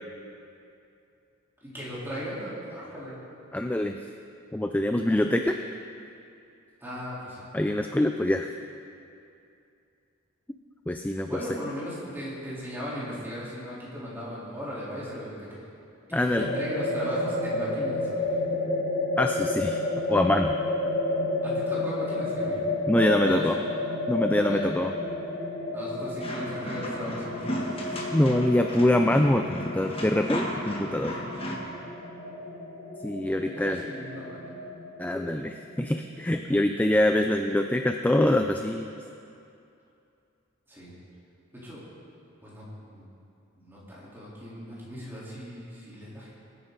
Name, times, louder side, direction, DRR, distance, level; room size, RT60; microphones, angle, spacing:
voice 1, 1.6-3.2 6.8-7.4 11.3-15.6 16.1-18.3 21.4-22.6 23.2-23.6 24.3-24.9 25.7-27.8 33.4-34.4 40.7-40.9 41.6-41.8 42.4-43.1 43.5-46.3, equal, 10° right, -9 dB, 4.0 m, -37 dB
voice 2, 3.5-4.0 4.5-5.6 7.5-8.5 10.9-11.3 16.1-16.5 19.2-19.8 20.1-20.6 22.9-23.6 24.1-25.0 28.1-31.2 33.0-33.9 35.0-38.9, left 1 dB, 10° left, 5 dB, 0.3 m, -24 dB
sound 1, 16.4-36.0, left 2 dB, 55° left, 3.6 m, -31 dB
sound 2, 26.2-31.6, equal, 30° left, 1.6 m, -35 dB
21.5 x 9.8 x 4.1 m, 2.6 s
head